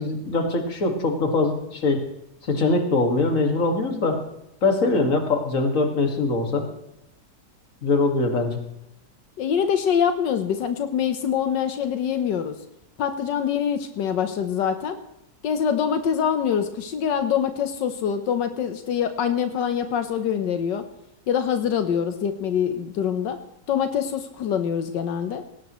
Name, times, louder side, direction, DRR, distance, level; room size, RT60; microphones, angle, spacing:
voice 1, 0.0-2.1 2.4-4.2 4.6-6.7 7.8-8.6, left 3 dB, 50° left, 4 dB, 2.4 m, -22 dB
voice 2, 9.4-12.6 13.0-15.0 15.4-20.8 21.3-23.4 23.7-25.4, left 8 dB, 85° left, 8 dB, 1.6 m, -24 dB
19.0 x 17.0 x 3.1 m, 0.86 s
omnidirectional pair, 1.9 m